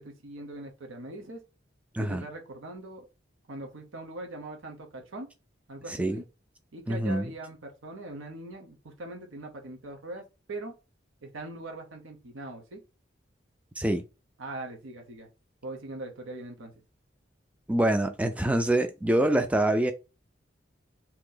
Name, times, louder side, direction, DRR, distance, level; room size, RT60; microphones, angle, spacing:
voice 1, 0.0-1.4 2.0-3.1 3.5-5.3 5.7-6.2 6.7-10.7 11.2-12.8 14.4-15.3 15.6-16.7, right 2 dB, 90° right, 0.8 m, -41 dB
voice 2, 1.9-2.2 5.9-6.2 6.9-7.3 13.8-14.0 17.7-19.9, right 1 dB, 5° right, 0.3 m, -25 dB
2.9 x 2.7 x 3.8 m
head